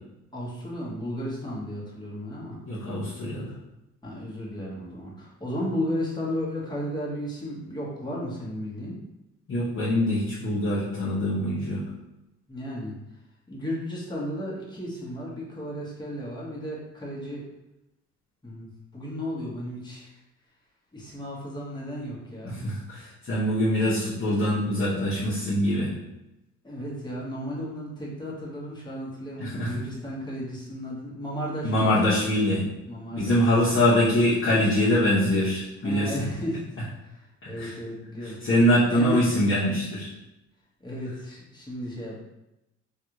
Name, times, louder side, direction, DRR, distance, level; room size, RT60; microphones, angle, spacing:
voice 1, 0.3-2.6 4.0-9.0 12.5-12.9 13.5-17.4 18.4-20.2 20.9-22.6 26.6-32.0 32.8-34.2 35.8-36.6 37.0-38.4 38.9-39.2 40.8-42.2, equal, 15° left, -6 dB, 1.2 m, -34 dB
voice 2, 2.6-3.5 9.5-11.8 22.4-25.9 29.4-29.7 31.6-32.6 33.1-36.2 37.4-37.8 38.2-40.1, left 1 dB, 45° left, -9 dB, 1.0 m, -24 dB
3.3 x 2.4 x 3.0 m, 0.93 s
cardioid pair, 90°, 30 cm